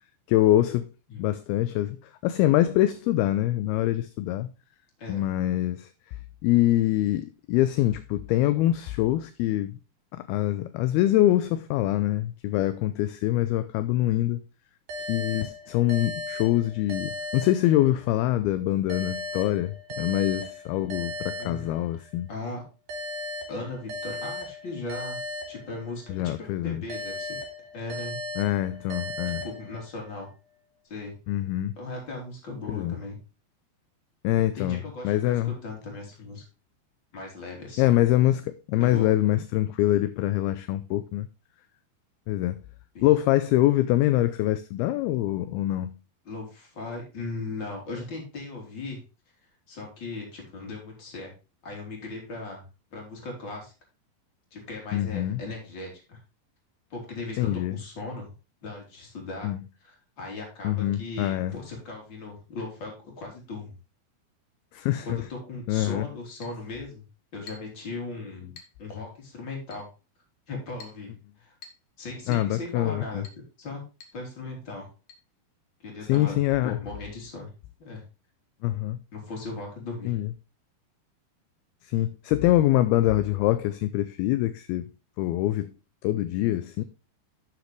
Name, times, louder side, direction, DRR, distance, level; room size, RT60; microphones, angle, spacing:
voice 1, 0.3-0.9 1.2-2.0 2.2-4.5 5.1-5.9 6.4-9.8 10.2-14.4 15.1-22.3 26.1-26.8 28.4-29.4 31.3-31.8 32.7-33.0 34.2-35.5 37.8-41.3 42.3-42.6 43.0-46.0 54.9-55.4 57.4-57.8 59.4-59.6 60.6-61.6 64.7-65.2 65.7-66.1 72.3-73.2 76.0-76.8 78.6-79.0 80.1-80.3 81.8-84.9 85.2-85.7 86.0-86.8, left 14 dB, 80° left, 2.4 m, -24 dB
sound 1, 14.9-18.2 18.9-22.2 22.9-26.2 26.9-30.2, left 2 dB, 75° right, 5.1 m, -37 dB
voice 2, 21.4-21.7 22.3-22.6 23.5-25.2 25.5-27.4 27.7-28.2 29.3-30.3 30.8-31.1 31.8-33.2 34.3-36.4 37.1-37.9 38.8-39.1 42.9-43.1 46.3-49.0 49.7-51.3 51.6-52.6 52.9-53.7 54.5-56.2 56.9-58.3 58.6-59.5 59.8-63.7 65.0-67.0 67.3-68.5 68.8-69.9 70.5-71.5 72.0-73.3 73.6-73.8 74.1-74.9 75.8-76.4 76.6-77.5 77.8-78.0 79.1-80.2, left 3 dB, 30° left, 3.6 m, -38 dB
Chink clink, 66.4-66.6 67.5-67.8 68.6-68.8 69.7-69.9 70.8-71.0 71.6-71.9 72.3-72.5 73.2-73.4 74.0-74.2 74.5-74.6 75.1-75.2 76.1-76.2, left 5 dB, 55° left, 2.2 m, -48 dB
11.5 x 6.8 x 3.2 m
omnidirectional pair, 4.8 m